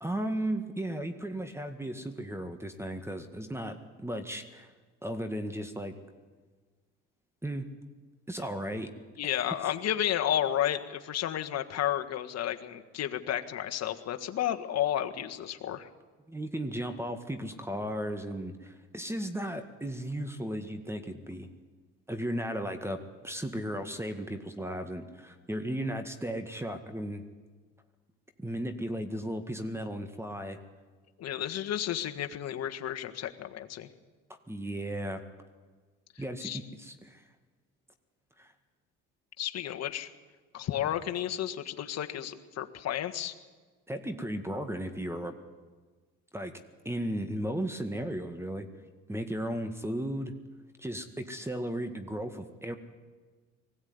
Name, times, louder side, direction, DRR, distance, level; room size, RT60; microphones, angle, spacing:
voice 1, 0.0-4.7 5.0-6.0 7.4-7.7 8.3-8.9 16.3-21.5 22.1-23.0 23.2-27.2 28.4-30.6 34.3-35.2 36.2-37.2 38.4-38.5 43.9-45.4 46.3-46.5 46.9-48.7 49.1-50.3 50.8-52.8, right 1 dB, 10° right, 8 dB, 1.8 m, -35 dB
voice 2, 9.2-15.9 31.2-33.9 36.4-36.6 39.4-40.1 40.5-43.3, left 11 dB, 55° left, 6 dB, 1.7 m, -32 dB
20.5 x 16.0 x 9.6 m, 1.4 s
supercardioid pair, 85°, 31 cm